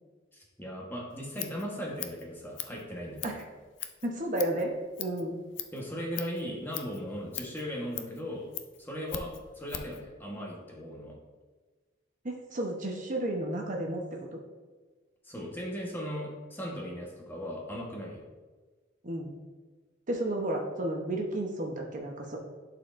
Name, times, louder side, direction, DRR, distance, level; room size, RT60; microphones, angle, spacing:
voice 1, 0.3-3.4 5.7-8.5 8.8-11.2 15.2-18.2, equal, 10° left, -2 dB, 1.1 m, -38 dB
Scissors, 1.1-10.0, left 10 dB, 70° left, 0.5 m, -42 dB
voice 2, 4.0-4.7 5.0-5.4 12.2-14.0 14.3-14.4 19.0-19.4 20.1-22.4, right 1 dB, 40° right, 1 dB, 0.8 m, -32 dB
11.0 x 4.3 x 2.5 m, 1.3 s
head